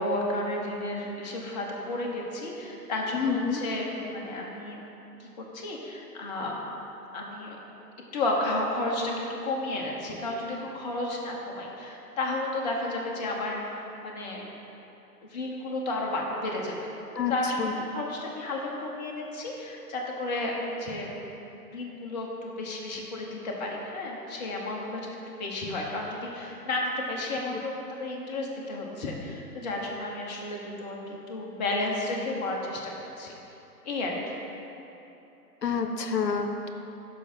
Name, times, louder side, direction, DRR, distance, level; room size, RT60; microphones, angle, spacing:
voice 1, 0.0-4.8 5.2-6.7 7.1-7.6 8.1-14.6 15.2-21.1 21.6-32.9 33.2-33.4 33.8-34.4, left 2 dB, 25° left, -1 dB, 1.0 m, -32 dB
voice 2, 3.1-3.6 17.2-17.3 17.6-17.7 35.6-36.7, left 6 dB, 85° left, 6 dB, 0.8 m, -28 dB
12.0 x 4.8 x 4.4 m, 3.0 s
figure-of-eight pair, 135°, 48 cm